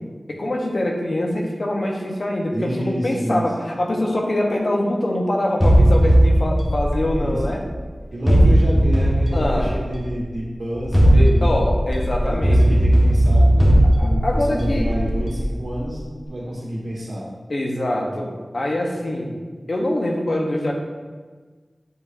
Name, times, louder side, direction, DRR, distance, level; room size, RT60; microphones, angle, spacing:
voice 1, 0.3-7.6 8.3-8.5 9.3-9.8 11.1-12.8 14.0-14.9 17.5-19.3 19.7-20.7, left 1 dB, 65° left, 0 dB, 1.0 m, -24 dB
voice 2, 2.5-3.5 7.2-7.4 8.1-11.6 12.3-16.0 16.3-17.2, equal, 85° right, -5 dB, 1.7 m, -29 dB
sound 1, 5.6-7.7 8.3-10.1 10.8-15.8, equal, 15° left, 1.4 m, -17 dB
8.1 x 4.9 x 2.7 m, 1.4 s
wide cardioid pair, 55°, 0 cm